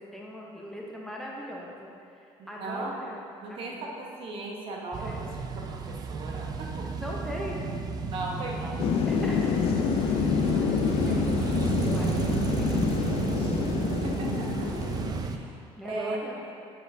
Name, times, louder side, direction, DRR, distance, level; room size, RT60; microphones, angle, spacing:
voice 1, 0.0-3.2 3.5-4.0 5.0-5.4 6.9-7.7 9.1-9.6 10.0-13.4 15.8-16.4, equal, 5° left, -4 dB, 0.8 m, -41 dB
voice 2, 2.4-2.9 3.4-6.9 8.1-8.9 13.9-14.7 15.2-15.5 15.8-16.2, right 2 dB, 50° right, -1 dB, 0.9 m, -37 dB
sound 1, 4.9-15.4, right 5 dB, 35° right, 0.4 m, -32 dB
Thunder / Rain, 8.8-15.2, left 6 dB, 55° left, 0.4 m, -27 dB
8.8 x 4.1 x 2.7 m, 2.5 s
cardioid pair, 105°, 11 cm